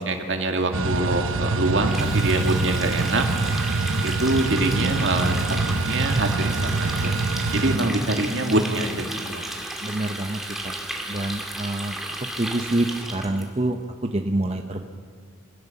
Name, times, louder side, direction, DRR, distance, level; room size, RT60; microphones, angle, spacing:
voice 1, 0.0-3.3 4.0-7.1 7.5-8.9 9.2-9.4, right 2 dB, 65° right, 4 dB, 2.2 m, -24 dB
sound 1, 0.7-7.8, right 3 dB, 90° right, 0.9 m, -25 dB
Water tap faucet, 1.8-13.4, right 1 dB, ahead, 2.2 m, -34 dB
voice 2, 9.8-10.7 11.1-13.8 14.0-14.9, right 1 dB, 30° right, 4 dB, 0.8 m, -27 dB
25.0 x 16.0 x 7.1 m, 2.1 s
head